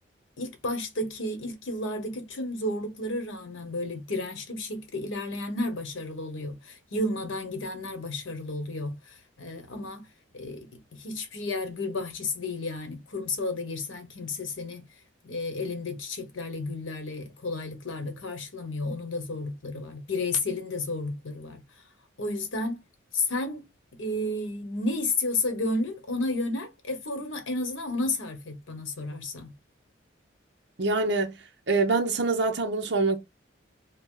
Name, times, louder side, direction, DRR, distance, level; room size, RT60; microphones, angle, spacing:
voice 1, 0.4-8.9 9.4-10.1 10.3-10.6 10.9-14.9 15.2-21.6 22.2-22.8 23.1-23.6 24.0-29.5, left 2 dB, 90° left, 1.0 m, -32 dB
voice 2, 30.8-31.3 31.7-33.2, right 3 dB, 65° right, 0.6 m, -25 dB
2.9 x 2.0 x 3.6 m
head